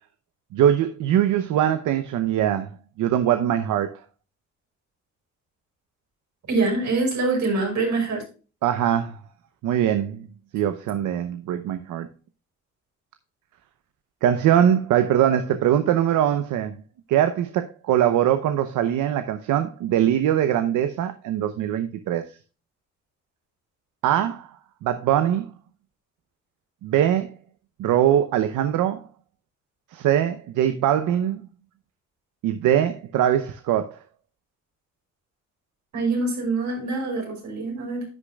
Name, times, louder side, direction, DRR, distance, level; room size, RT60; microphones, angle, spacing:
voice 1, 0.5-2.7 3.0-4.0 8.6-9.2 9.6-10.2 10.5-12.1 14.2-16.8 17.1-22.3 24.0-24.5 24.8-25.4 26.8-27.3 27.8-29.0 29.9-31.5 32.4-34.0, right 10 dB, 85° right, 0.9 m, -22 dB
voice 2, 6.5-8.2 35.9-38.0, right 3 dB, 70° right, 5.6 m, -24 dB
11.0 x 8.5 x 2.3 m
cardioid pair, 90°, 30 cm